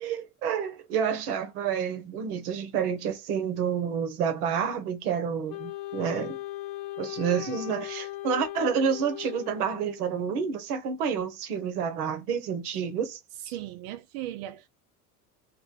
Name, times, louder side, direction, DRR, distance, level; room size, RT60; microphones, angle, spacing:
voice 1, 0.0-6.4 7.0-13.2, right 7 dB, 80° right, 0.9 m, -29 dB
Wind instrument woodwind instrument, 5.5-10.1, left 16 dB, 70° left, 0.5 m, -38 dB
voice 2, 13.4-14.7, right 13 dB, 60° right, 0.5 m, -37 dB
2.5 x 2.1 x 3.8 m
hypercardioid pair, 75°, 45 cm